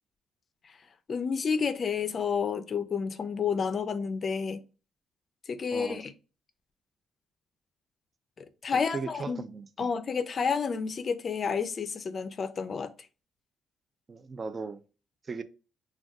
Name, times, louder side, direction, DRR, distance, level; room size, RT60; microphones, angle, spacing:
voice 1, 1.1-4.6 5.5-6.1 8.4-9.4 9.8-12.9, left 6 dB, 45° left, 0.4 m, -30 dB
voice 2, 5.7-6.0 8.7-9.7 14.1-14.8 15.2-15.4, right 4 dB, 35° right, 0.3 m, -37 dB
2.5 x 2.2 x 3.5 m
cardioid pair, 90°, 0 cm